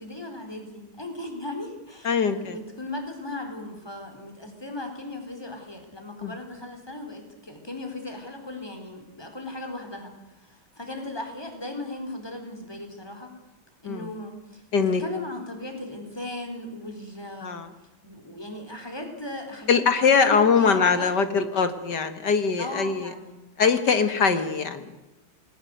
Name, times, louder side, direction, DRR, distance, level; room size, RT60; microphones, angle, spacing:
voice 1, 0.0-13.3 13.8-17.6 18.0-19.8 20.2-21.1 22.6-23.4, left 2 dB, 10° left, 4 dB, 4.4 m, -37 dB
voice 2, 2.0-2.6 6.2-6.3 13.8-14.1 14.7-15.0 17.4-17.7 19.7-23.1 23.6-25.0, left 5 dB, 55° left, 9 dB, 2.3 m, -22 dB
28.0 x 20.5 x 8.1 m, 1.0 s
omnidirectional pair, 2.2 m